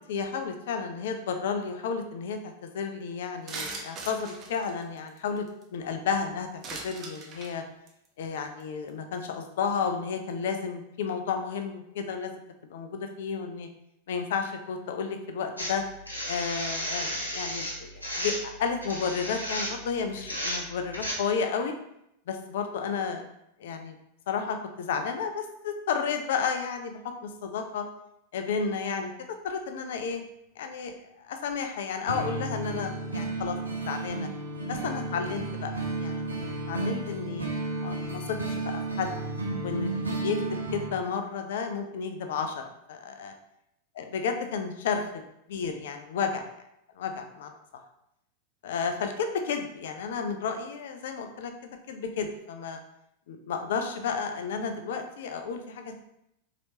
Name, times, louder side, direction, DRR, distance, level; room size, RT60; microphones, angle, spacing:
voice 1, 0.1-7.6 8.2-12.3 12.6-13.7 14.1-15.8 16.3-21.7 22.3-23.2 23.6-23.9 24.3-27.8 28.3-29.1 29.4-30.2 30.6-33.6 33.9-34.3 34.7-35.7 36.0-37.5 37.8-39.1 39.6-40.5 40.7-42.6 42.9-43.3 44.0-45.2 45.5-46.4 47.0-47.5 48.6-51.5 51.9-52.8 53.3-55.9, left 6 dB, 55° left, 6 dB, 0.5 m, -32 dB
sound 1, 3.5-5.6 6.6-7.5 7.9-8.1 8.6-8.7 8.9-9.1 9.4-9.5, right 3 dB, 30° right, 0.6 m, -39 dB
sound 2, 15.6-21.1, equal, 85° left, 1.0 m, -33 dB
sound 3, 32.1-40.9, right 2 dB, 75° right, 0.7 m, -33 dB
4.2 x 3.0 x 2.7 m, 0.78 s
figure-of-eight pair, 90°, 0 cm